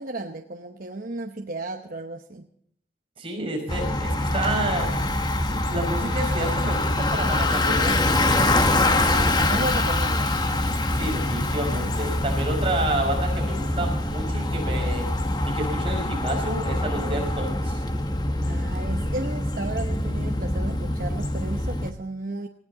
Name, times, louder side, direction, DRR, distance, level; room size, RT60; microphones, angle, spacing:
voice 1, 0.0-2.5 8.8-10.4 16.9-17.3 18.5-22.5, right 2 dB, 50° right, 3 dB, 0.9 m, -34 dB
voice 2, 3.2-5.0 5.5-8.1 10.9-15.1 15.4-17.8, right 1 dB, 30° right, 1 dB, 5.4 m, -29 dB
Bicycle, 3.7-21.9, left 2 dB, 25° left, 1.0 m, -24 dB
19.0 x 17.0 x 3.9 m, 0.63 s
head